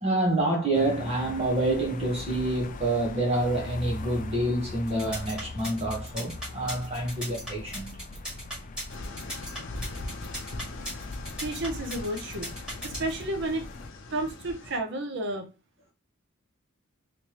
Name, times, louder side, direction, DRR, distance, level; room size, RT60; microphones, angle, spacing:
voice 1, 0.0-8.0, right 1 dB, 30° right, 1.0 m, -27 dB
sound 1, 0.7-13.9, left 3 dB, 35° left, 0.3 m, -41 dB
sound 2, 4.9-13.2, equal, 5° right, 1.8 m, -38 dB
sound 3, 8.9-14.8, left 2 dB, 65° left, 0.7 m, -41 dB
voice 2, 11.4-12.5 12.8-13.6 14.1-15.4, right 1 dB, 55° right, 0.7 m, -31 dB
3.4 x 3.2 x 2.9 m
head